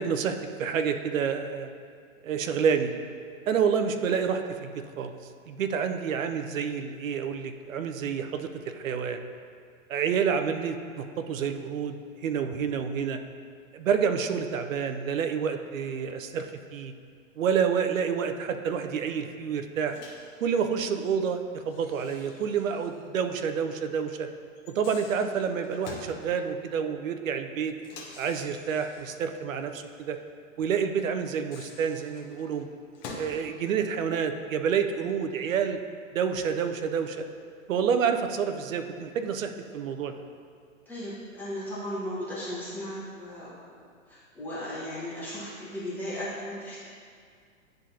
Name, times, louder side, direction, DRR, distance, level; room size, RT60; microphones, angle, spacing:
voice 1, 0.0-1.7 2.2-2.9 3.5-5.1 5.5-9.2 9.9-13.2 13.7-16.9 17.4-20.0 20.4-24.3 24.7-27.7 28.2-30.2 30.6-32.7 33.1-35.8 36.1-37.3 37.7-40.1, right 7 dB, 75° right, 7 dB, 0.7 m, -28 dB
Microwave oven, 19.9-20.3 21.7-23.1 23.3-23.4 24.6-26.2 27.8-29.2 31.2-33.4, left 4 dB, 35° left, 1.0 m, -46 dB
voice 2, 40.9-43.8 44.1-46.8, equal, 5° left, -11 dB, 1.5 m, -36 dB
10.5 x 3.9 x 2.8 m, 2.1 s
hypercardioid pair, 135°, 40 cm